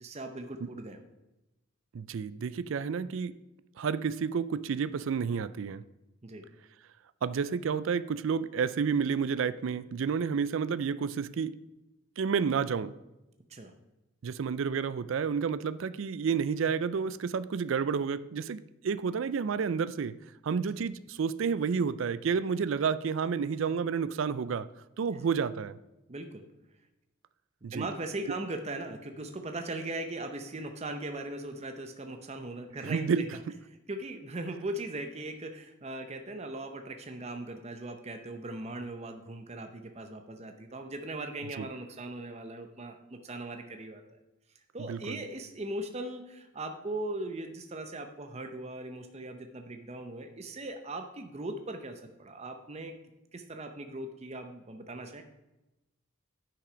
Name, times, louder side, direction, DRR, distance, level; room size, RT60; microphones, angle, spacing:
voice 1, 0.0-1.0 6.2-6.5 13.5-13.7 25.1-25.3 26.1-26.4 27.6-33.3 33.7-44.0 44.7-53.0 53.3-55.2, right 2 dB, 30° right, 6 dB, 0.7 m, -39 dB
voice 2, 1.9-3.3 3.8-5.8 7.2-11.5 12.2-12.9 14.2-20.1 20.4-24.7 25.0-25.8 27.6-27.9 32.8-33.2 41.6-41.7 44.9-45.2, right 6 dB, 65° right, 16 dB, 0.4 m, -30 dB
9.9 x 5.8 x 5.1 m, 0.97 s
head